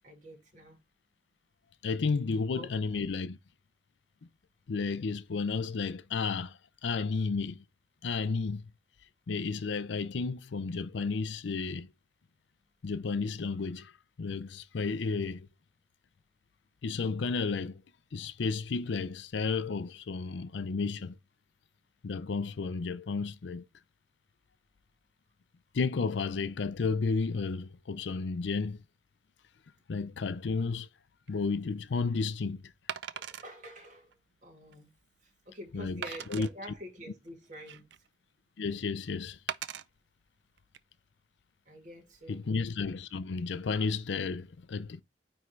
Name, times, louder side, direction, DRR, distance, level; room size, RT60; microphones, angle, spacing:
voice 1, 0.0-0.8 2.5-2.7 33.1-34.1 34.4-34.9 35.5-37.9 41.7-42.4, equal, 40° right, 2.4 m, -47 dB
voice 2, 1.8-3.4 4.7-7.6 8.0-8.7 9.3-11.9 12.8-13.9 14.2-15.5 16.8-17.8 18.1-21.2 22.0-23.7 25.7-28.8 29.9-30.9 31.3-32.6 35.7-36.0 36.3-36.5 38.6-39.4 42.3-45.0, left 4 dB, 70° left, 0.5 m, -32 dB
Wood, 31.3-31.4 32.9-33.5 34.1-34.2 34.7-34.8 36.0-36.5 37.3-38.1 39.5-39.8 40.6-40.8, right 9 dB, 70° right, 0.4 m, -39 dB
9.3 x 3.6 x 3.2 m
head